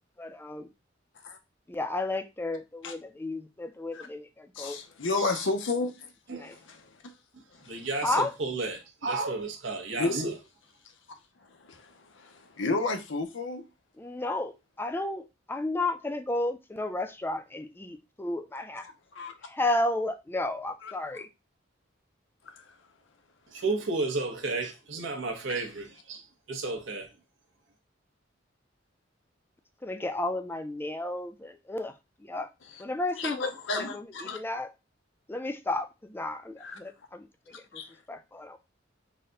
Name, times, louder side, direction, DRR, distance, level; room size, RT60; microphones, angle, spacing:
voice 1, 0.2-0.7 1.7-4.8 6.3-6.6 8.0-8.3 14.0-18.9 19.5-21.3 29.8-31.9 32.3-32.5 32.8-33.4 33.7-34.7 35.3-37.3 37.5-37.6 38.1-38.6, left 2 dB, 10° left, 0.4 m, -32 dB
voice 2, 4.5-6.1 6.4-7.1 7.5-7.9 9.9-10.2 11.4-13.6 18.8-19.3 20.8-20.9 22.5-22.8 32.6-32.8 33.1-34.4 36.6-36.8 37.7-38.0, left 3 dB, 80° left, 0.7 m, -33 dB
voice 3, 7.7-10.3 23.5-27.1, right 3 dB, 80° right, 1.0 m, -32 dB
4.1 x 2.2 x 3.7 m
head